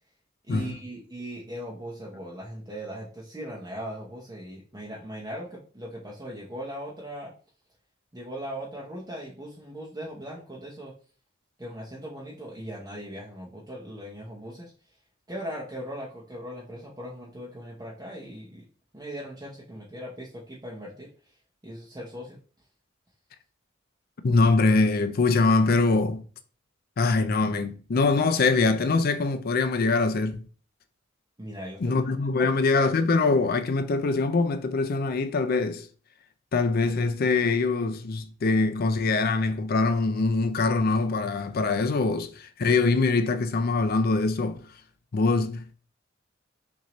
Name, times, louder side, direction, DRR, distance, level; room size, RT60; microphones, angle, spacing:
voice 1, 0.4-7.3 8.1-10.9 11.6-14.7 15.3-18.6 18.9-21.4 21.6-22.4 31.4-32.5, equal, 20° right, 0.8 m, -39 dB
voice 2, 24.2-26.2 27.0-30.4 31.8-35.9 36.5-44.6 45.1-45.7, left 3 dB, 50° left, 0.4 m, -23 dB
6.0 x 2.7 x 3.0 m
head